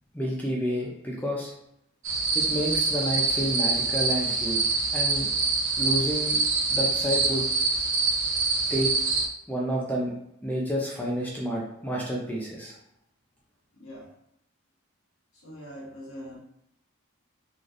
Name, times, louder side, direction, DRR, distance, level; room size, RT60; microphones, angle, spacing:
voice 1, 0.1-1.5 2.3-4.6 4.9-5.3 5.8-6.4 6.7-7.4 8.7-8.9 9.5-10.1 10.4-12.7, equal, 10° left, -3 dB, 0.5 m, -29 dB
sound 1, 2.0-9.3, right 3 dB, 60° right, 0.5 m, -25 dB
voice 2, 13.7-14.1 15.3-16.4, equal, 75° left, -3 dB, 1.2 m, -42 dB
4.0 x 3.1 x 2.5 m, 0.79 s
head